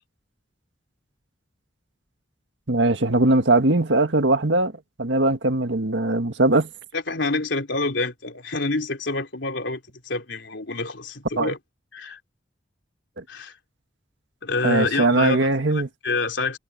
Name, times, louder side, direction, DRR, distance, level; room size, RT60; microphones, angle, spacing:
voice 1, 2.7-4.7 5.0-6.7 11.4-11.5 13.2-13.3 14.6-15.9, right 2 dB, 75° right, 1.7 m, -20 dB
voice 2, 6.9-9.8 10.1-11.6 11.9-12.2 13.3-13.5 14.4-16.6, left 3 dB, 70° left, 3.6 m, -27 dB
head